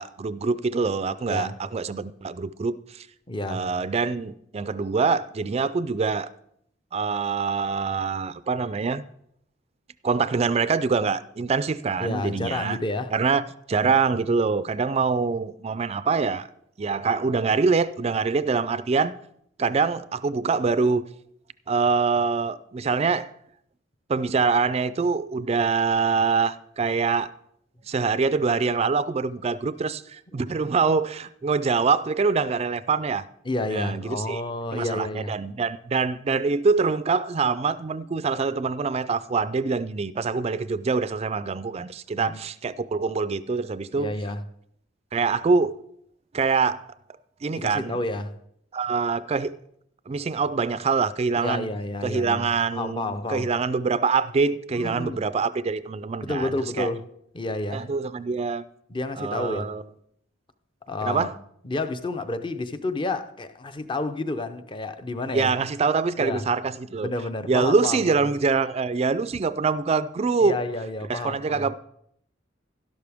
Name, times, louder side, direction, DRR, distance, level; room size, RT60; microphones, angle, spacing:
voice 1, 0.0-3.1 3.5-6.3 6.9-9.0 10.0-12.8 13.1-16.5 16.8-19.1 19.6-21.0 21.7-23.3 24.1-27.3 27.9-33.3 33.7-34.4 34.7-44.1 45.1-45.8 46.3-46.9 47.4-48.0 48.7-49.6 50.1-51.7 52.0-56.9 57.7-58.6 59.2-59.8 61.0-61.3 65.3-67.1 67.5-70.6 71.1-71.8, right 4 dB, 35° right, 0.4 m, -24 dB
voice 2, 3.3-3.6 12.0-13.1 13.8-13.9 33.4-35.4 42.2-42.4 43.9-44.4 47.5-48.3 51.4-53.5 54.7-55.2 56.2-57.0 57.3-57.9 58.9-59.7 60.9-61.3 61.6-65.5 66.2-66.5 67.0-68.3 70.4-71.7, left 2 dB, 25° left, 0.6 m, -30 dB
12.0 x 11.5 x 3.5 m
head